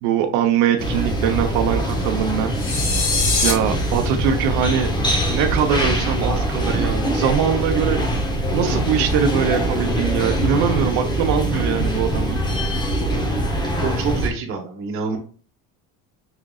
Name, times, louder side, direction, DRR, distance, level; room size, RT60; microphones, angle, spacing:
voice 1, 0.0-2.5 3.4-4.9 5.3-8.0 8.5-12.4, right 8 dB, 90° right, 5 dB, 0.8 m, -22 dB
sound 1, 0.8-14.3, right 1 dB, 10° left, 0.9 m, -23 dB
sound 2, 2.6-3.5, left 4 dB, 75° left, 1.9 m, -21 dB
voice 2, 13.8-15.2, right 5 dB, 35° right, 1 dB, 1.2 m, -26 dB
6.0 x 3.7 x 2.3 m, 0.39 s
cardioid pair, 160°, 37 cm